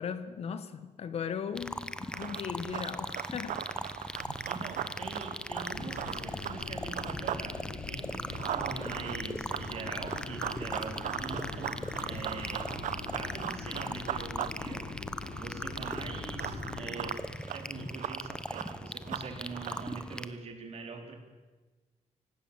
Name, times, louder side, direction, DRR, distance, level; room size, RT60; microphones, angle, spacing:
voice 1, 0.0-4.0, left 7 dB, 55° left, 1.3 m, -38 dB
sound 1, 1.6-20.3, left 1 dB, 5° left, 0.9 m, -40 dB
Run, 2.0-7.5 7.8-20.0, right 11 dB, 90° right, 1.1 m, -39 dB
voice 2, 4.5-11.7 12.1-14.9 15.3-17.2 17.5-21.1, right 4 dB, 55° right, 4.0 m, -43 dB
sound 2, 5.7-17.1, left 4 dB, 85° left, 3.6 m, -43 dB
25.0 x 18.5 x 7.3 m
cardioid pair, 150°, 13 cm